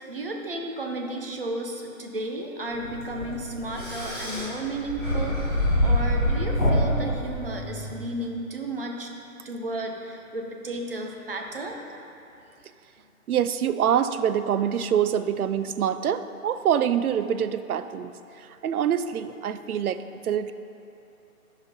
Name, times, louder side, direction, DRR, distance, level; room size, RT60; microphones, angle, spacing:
voice 1, 0.1-5.4 5.8-9.1 9.4-11.8, right 1 dB, 40° right, 1 dB, 0.7 m, -33 dB
sound 1, 2.7-7.9, equal, 5° left, 1.6 m, -26 dB
voice 2, 13.3-20.5, right 9 dB, 85° right, 12 dB, 0.5 m, -25 dB
13.5 x 5.1 x 2.8 m, 2.7 s
hypercardioid pair, 175°, 43 cm